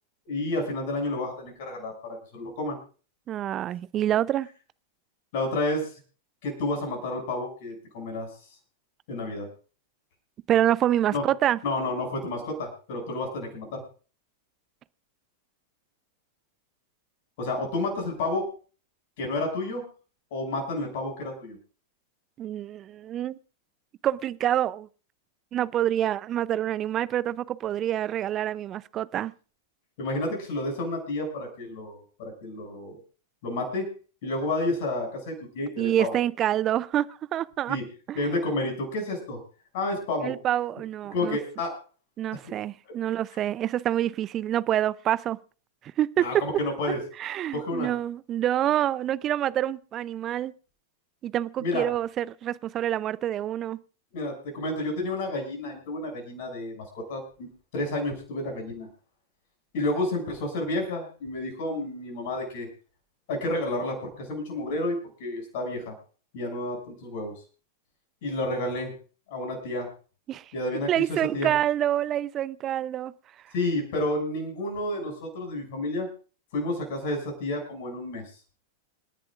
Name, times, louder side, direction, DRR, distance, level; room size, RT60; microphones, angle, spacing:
voice 1, 0.3-2.8 5.3-6.0 6.4-8.3 9.1-9.5 11.1-11.2 11.6-13.8 17.4-18.5 19.2-19.8 20.3-21.6 30.0-33.0 33.4-33.9 34.2-36.2 37.7-37.8 38.1-39.4 39.7-40.3 41.1-41.7 46.2-47.0 47.5-47.9 51.6-51.9 54.1-58.9 59.7-62.7 63.3-65.9 66.3-67.3 68.2-68.9 69.3-69.9 70.5-71.0 71.3-71.5 73.5-76.1 76.5-78.3, left 2 dB, 55° left, 6.6 m, -30 dB
voice 2, 3.3-4.5 10.5-11.6 22.4-23.4 24.0-24.9 25.5-29.3 35.8-37.8 38.1-38.3 40.2-41.4 42.2-45.4 46.0-46.4 47.2-50.5 51.2-53.8 70.3-70.5 70.9-73.1, right 11 dB, 30° right, 0.6 m, -27 dB
28.0 x 10.5 x 2.5 m
figure-of-eight pair, 95°, 0 cm